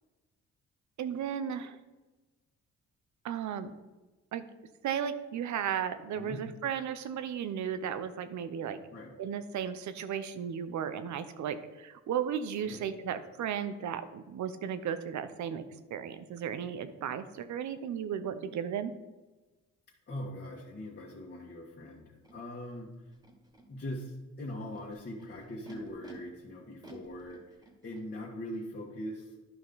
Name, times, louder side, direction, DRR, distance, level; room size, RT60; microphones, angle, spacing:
voice 1, 1.0-1.8 3.2-3.7 4.3-4.4 4.8-8.8 9.2-15.6 15.9-18.9, right 8 dB, 70° right, 11 dB, 0.8 m, -35 dB
voice 2, 20.1-23.1 23.7-29.4, left 1 dB, 35° left, -4 dB, 1.8 m, -41 dB
Animal, 22.2-22.3 23.1-23.6 24.5-26.1 26.8-28.0, right 2 dB, 15° right, 1.9 m, -54 dB
11.5 x 5.4 x 4.0 m, 1.2 s
cardioid pair, 90°, 30 cm